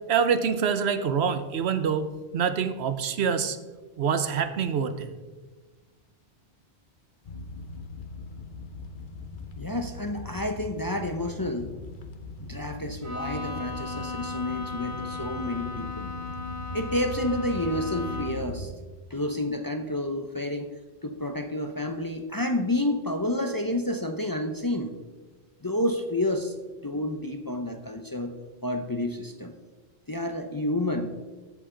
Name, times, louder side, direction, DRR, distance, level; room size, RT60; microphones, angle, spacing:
voice 1, 0.1-2.1 2.3-3.6 4.0-5.1, right 6 dB, 80° right, 11 dB, 1.0 m, -25 dB
sound 1, 7.3-18.7, left 1 dB, 55° left, 1.0 m, -40 dB
voice 2, 9.6-11.7 12.4-16.1 16.7-18.7 19.1-20.7 21.0-24.9 25.6-26.5 26.8-28.3 28.6-29.5 30.1-31.1, left 1 dB, 25° left, 5 dB, 0.6 m, -29 dB
Bowed string instrument, 13.0-18.5, left 4 dB, 15° right, 2.1 m, -36 dB
14.0 x 8.4 x 3.8 m, 1.3 s
omnidirectional pair, 1.1 m